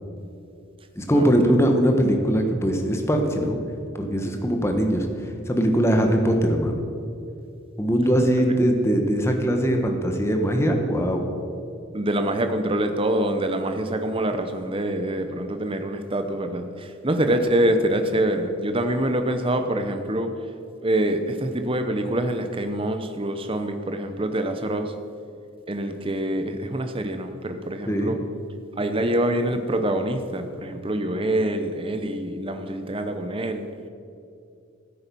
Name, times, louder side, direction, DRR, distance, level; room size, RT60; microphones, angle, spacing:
voice 1, 0.9-3.6 3.9-5.1 5.5-6.7 7.8-11.2 27.9-28.1, equal, 10° left, 3 dB, 1.1 m, -21 dB
voice 2, 11.9-20.3 20.8-24.9 25.7-28.2 28.8-33.7, right 1 dB, 25° right, 7 dB, 0.8 m, -25 dB
15.0 x 8.8 x 5.4 m, 2.6 s
head